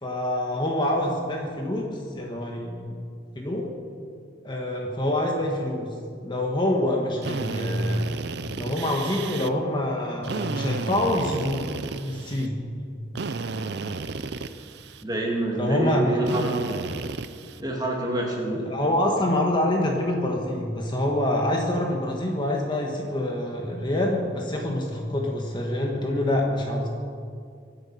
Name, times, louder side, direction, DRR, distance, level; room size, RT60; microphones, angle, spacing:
voice 1, 0.0-3.0 3.3-3.7 4.4-5.9 6.2-8.0 8.5-11.7 12.0-12.6 15.6-16.1 18.5-26.9, left 1 dB, 25° left, 0 dB, 1.4 m, -26 dB
Drill, 7.2-9.5 10.2-12.5 13.2-15.0 16.2-17.6, right 4 dB, 60° right, 0.6 m, -33 dB
voice 2, 15.0-16.6 17.6-18.6, right 2 dB, 20° right, -1 dB, 2.4 m, -26 dB
24.5 x 8.2 x 5.8 m, 2.3 s
head